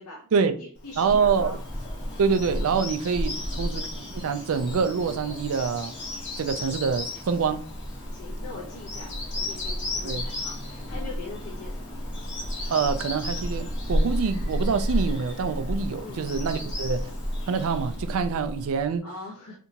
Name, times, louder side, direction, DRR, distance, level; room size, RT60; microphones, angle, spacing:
voice 1, 0.0-1.6 3.3-3.5 8.1-11.8 16.0-16.3 19.0-19.6, left 3 dB, 80° left, 0.8 m, -42 dB
Bird vocalization bird call bird song, 0.8-18.8, left 1 dB, 55° left, 1.3 m, -32 dB
voice 2, 1.0-1.6 2.2-3.9 4.1-5.9 6.4-7.6 10.0-10.3 12.7-17.1 17.5-19.0, right 5 dB, 65° right, 0.4 m, -26 dB
3.4 x 2.8 x 2.8 m
head